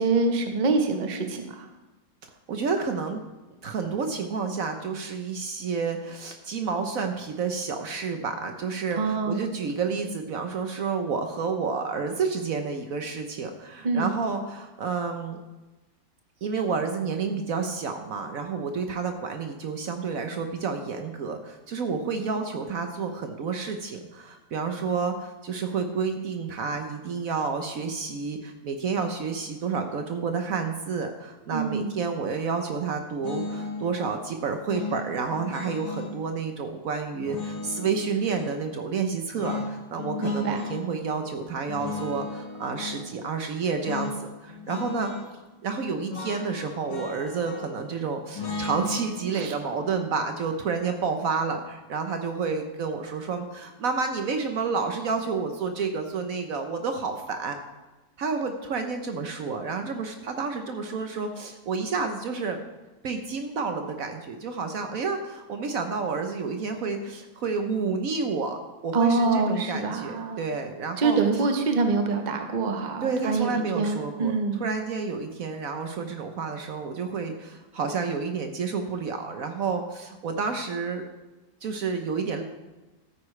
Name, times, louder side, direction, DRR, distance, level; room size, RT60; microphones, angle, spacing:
voice 1, 0.0-1.7 9.0-9.4 13.8-14.1 31.5-31.9 40.2-40.6 49.3-49.5 68.9-70.4 71.0-74.6, right 4 dB, 35° right, 5 dB, 0.9 m, -25 dB
voice 2, 2.5-3.2 3.6-15.4 16.4-45.1 45.6-57.6 58.2-62.6 63.0-68.6 68.8-71.2 73.0-81.0 81.6-82.4, right 5 dB, 60° right, 5 dB, 1.1 m, -30 dB
sound 1, 33.2-33.9 34.7-36.2 37.2-38.6 39.4-40.8 41.7-43.0 43.8-44.2 44.5-45.3 46.1-47.8 48.3-51.4, left 4 dB, 80° left, 2.3 m, -36 dB
13.0 x 9.4 x 3.2 m, 1.1 s
omnidirectional pair, 1.8 m